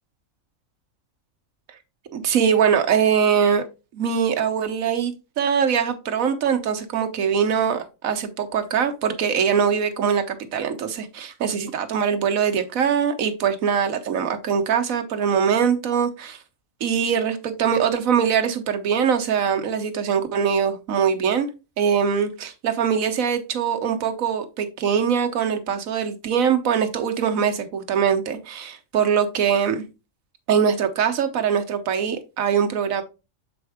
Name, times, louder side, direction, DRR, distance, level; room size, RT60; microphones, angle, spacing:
voice 1, 2.1-3.6 3.9-16.4 16.8-21.5 21.8-29.9 30.5-33.0, right 7 dB, 85° right, 7 dB, 1.3 m, -22 dB
7.4 x 4.4 x 3.5 m, 0.29 s
omnidirectional pair, 1.4 m